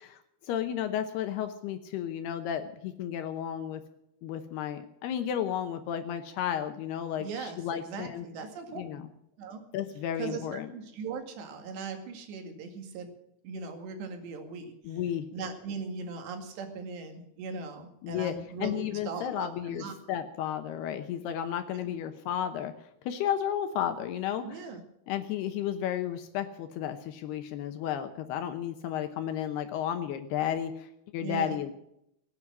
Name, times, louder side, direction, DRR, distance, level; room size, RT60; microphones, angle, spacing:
voice 1, 0.0-3.8 4.2-8.3 8.7-9.1 9.7-10.7 14.8-15.3 18.0-18.3 18.6-22.7 23.0-24.4 25.1-31.7, left 10 dB, 80° left, 8 dB, 2.9 m, -33 dB
voice 2, 7.2-9.1 9.4-9.6 10.2-13.1 13.4-15.0 15.3-19.9 21.7-21.9 24.4-24.8 31.2-31.6, right 4 dB, 90° right, 5 dB, 4.3 m, -39 dB
19.5 x 9.7 x 6.2 m, 0.77 s
omnidirectional pair, 4.8 m